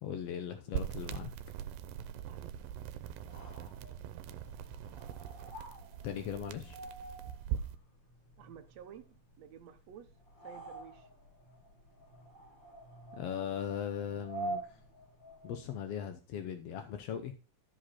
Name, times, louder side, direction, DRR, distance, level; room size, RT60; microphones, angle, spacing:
voice 1, 0.0-1.3 6.0-6.8 13.1-14.8 15.4-17.3, left 8 dB, 80° left, 1.4 m, -39 dB
sound 1, 0.7-7.8, right 9 dB, 90° right, 2.4 m, -42 dB
voice 2, 2.3-3.3 4.1-4.5 8.4-10.1 10.4-11.1, right 9 dB, 70° right, 1.7 m, -54 dB
sound 2, 3.1-15.7, right 3 dB, 35° left, 2.9 m, -48 dB
13.0 x 5.0 x 4.3 m
omnidirectional pair, 3.9 m